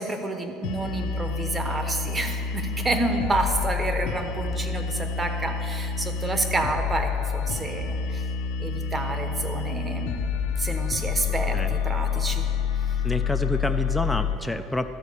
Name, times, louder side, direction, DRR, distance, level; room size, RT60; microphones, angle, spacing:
voice 1, 0.0-8.2 8.6-10.2 10.6-12.5 12.9-13.0, right 2 dB, 20° right, 6 dB, 0.9 m, -29 dB
sound 1, 0.6-14.4, left 6 dB, 75° left, 0.7 m, -28 dB
voice 2, 11.3-11.7 13.0-14.9, left 1 dB, 5° left, 6 dB, 0.4 m, -28 dB
12.5 x 4.4 x 6.7 m, 2.9 s
cardioid pair, 130°, 0 cm